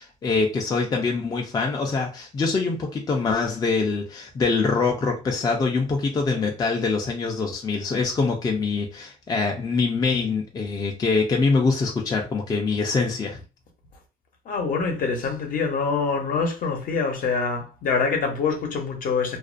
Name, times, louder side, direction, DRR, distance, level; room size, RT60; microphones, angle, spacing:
voice 1, 0.0-13.4, left 4 dB, 25° left, 0.4 m, -24 dB
voice 2, 14.5-19.4, left 4 dB, 60° left, 0.8 m, -25 dB
2.4 x 2.1 x 2.4 m
cardioid pair, 140°, 16 cm